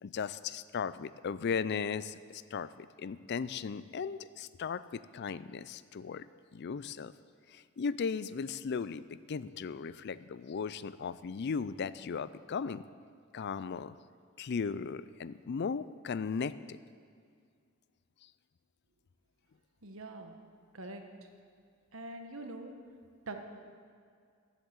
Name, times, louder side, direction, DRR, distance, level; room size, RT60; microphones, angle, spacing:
voice 1, 0.0-6.3 6.5-7.1 7.5-12.8 13.3-14.0 14.4-16.8 18.2-18.3, left 5 dB, 55° left, 16 dB, 0.4 m, -37 dB
voice 2, 19.8-20.3 20.7-21.0 21.9-22.7 23.3-23.4, right 2 dB, 75° right, 5 dB, 1.4 m, -43 dB
14.0 x 8.2 x 7.9 m, 2.2 s
head